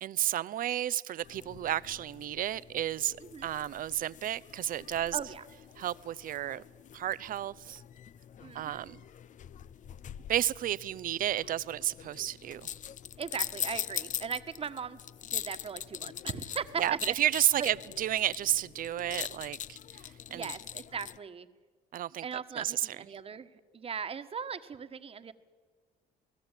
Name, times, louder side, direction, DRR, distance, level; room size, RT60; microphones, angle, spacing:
voice 1, 0.0-3.2 3.4-5.2 5.8-6.6 6.9-7.8 8.5-9.0 10.3-12.7 16.8-19.8 20.3-20.5 21.9-22.2 22.6-22.8, right 12 dB, 55° right, 0.8 m, -32 dB
sound 1, 1.2-21.2, left 10 dB, 50° left, 0.7 m, -43 dB
voice 2, 5.1-5.5 8.4-8.8 13.2-15.0 15.3-17.1 17.6-17.7 20.3-21.5 22.2-25.3, right 6 dB, 35° right, 1.5 m, -38 dB
29.0 x 18.5 x 9.2 m
cardioid pair, 110°, 17 cm